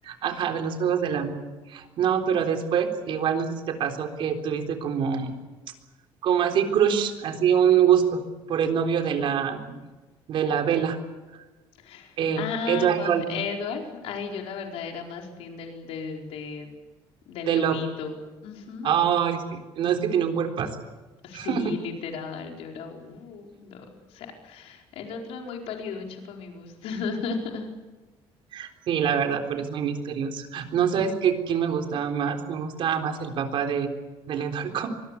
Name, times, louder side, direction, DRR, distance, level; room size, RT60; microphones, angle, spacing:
voice 1, 0.0-1.4 1.7-5.3 6.2-8.2 8.5-9.6 10.3-11.0 12.2-12.4 12.7-13.3 17.5-17.8 18.8-20.7 21.3-21.6 28.5-33.9 34.3-34.9, right 8 dB, 60° right, 6 dB, 3.8 m, -25 dB
voice 2, 11.8-16.7 17.3-18.9 21.2-27.7, left 5 dB, 80° left, 2 dB, 4.5 m, -35 dB
25.0 x 20.5 x 8.4 m, 1.2 s
cardioid pair, 135°, 10 cm